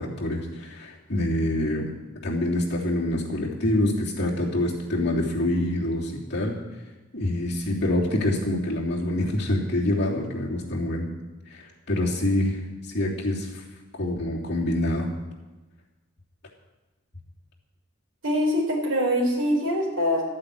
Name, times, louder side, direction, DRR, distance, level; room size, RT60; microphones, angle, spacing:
voice 1, 0.0-1.9 2.2-6.6 7.1-11.1 11.9-12.6 12.9-13.5 14.0-15.1, left 1 dB, 50° left, -4 dB, 3.1 m, -26 dB
voice 2, 18.2-20.2, equal, 70° right, -3 dB, 4.6 m, -23 dB
13.0 x 8.7 x 8.5 m, 1.1 s
head